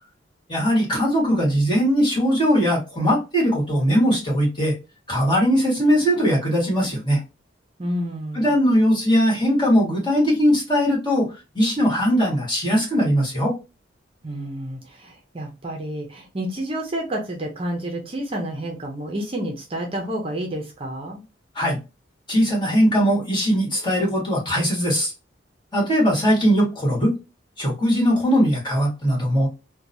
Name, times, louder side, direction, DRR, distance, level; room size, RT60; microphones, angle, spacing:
voice 1, 0.5-4.7 5.1-7.2 8.3-11.3 11.5-13.5 21.5-21.8 22.3-25.1 25.7-27.1 27.6-29.5, equal, 25° left, -3 dB, 1.5 m, -20 dB
voice 2, 7.8-8.5 14.2-21.2, right 1 dB, 30° right, 1 dB, 0.6 m, -30 dB
2.9 x 2.2 x 2.6 m, 0.27 s
head